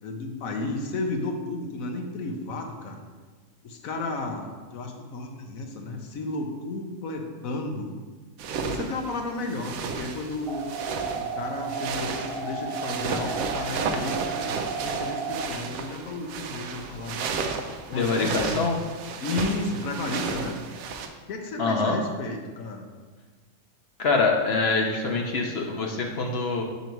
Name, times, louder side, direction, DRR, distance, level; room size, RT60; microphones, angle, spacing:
voice 1, 0.0-3.0 3.6-8.0 8.6-10.7 11.1-17.2 17.9-18.7 19.2-20.5 21.3-22.9, left 2 dB, 75° left, 3 dB, 1.2 m, -33 dB
sound 1, 8.4-21.1, right 5 dB, 80° right, 1.0 m, -33 dB
sound 2, 10.5-15.5, right 4 dB, 45° right, 1.2 m, -33 dB
voice 2, 17.9-18.8 21.6-22.0 24.0-26.6, left 3 dB, 55° left, 1 dB, 0.9 m, -25 dB
5.3 x 5.1 x 4.5 m, 1.4 s
omnidirectional pair, 1.5 m